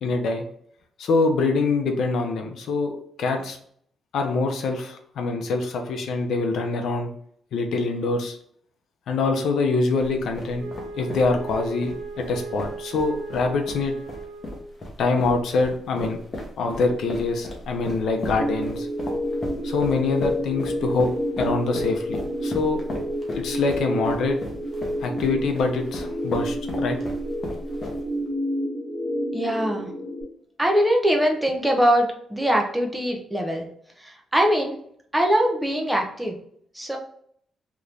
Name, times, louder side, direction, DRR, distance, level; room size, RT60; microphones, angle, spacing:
voice 1, 0.0-0.4 1.0-3.6 4.1-7.1 7.5-8.4 9.1-10.7 11.0-13.9 15.0-16.2 16.6-18.9 19.6-21.1 21.4-22.8 23.4-24.4 25.0-27.0, left 3 dB, 70° left, 3 dB, 0.6 m, -24 dB
sound 1, 10.0-28.3, left 1 dB, 30° left, 0.8 m, -36 dB
Wind instrument woodwind instrument, 10.6-14.8, right 4 dB, 50° right, 0.6 m, -37 dB
sound 2, 18.3-30.2, equal, 75° right, 1.4 m, -29 dB
voice 2, 29.3-29.9 30.6-33.7 34.0-34.7 35.1-36.4 36.7-37.0, equal, 5° right, 1 dB, 0.6 m, -22 dB
2.9 x 2.6 x 3.3 m, 0.64 s
cardioid pair, 150°, 0 cm